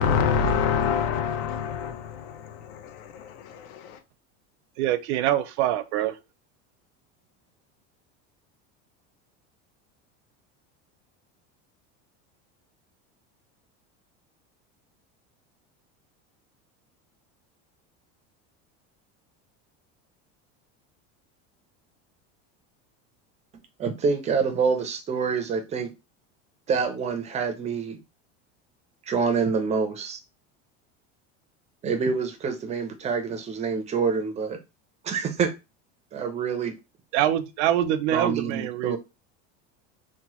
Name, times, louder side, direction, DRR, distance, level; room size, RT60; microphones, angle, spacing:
voice 1, 0.0-4.0, left 6 dB, 75° left, 0.6 m, -26 dB
voice 2, 4.8-6.1 37.1-39.0, right 12 dB, 85° right, 0.5 m, -24 dB
voice 3, 23.8-25.9 26.7-28.0 29.1-30.2 31.8-34.6 35.0-35.5 36.1-36.7 38.1-39.0, right 5 dB, 20° right, 0.4 m, -26 dB
2.9 x 2.1 x 2.9 m
supercardioid pair, 145°, 34 cm